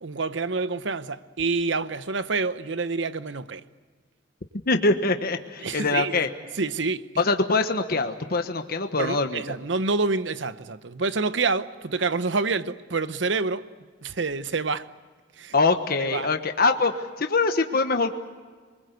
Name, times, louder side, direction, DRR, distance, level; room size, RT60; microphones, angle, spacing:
voice 1, 0.0-3.6 5.6-6.1 6.6-7.1 9.0-13.7 14.0-14.9 15.4-15.5 16.0-16.3, right 4 dB, 70° right, 0.9 m, -27 dB
voice 2, 4.7-6.3 7.2-9.4 15.5-18.1, left 3 dB, 55° left, 1.3 m, -23 dB
27.5 x 21.0 x 8.1 m
head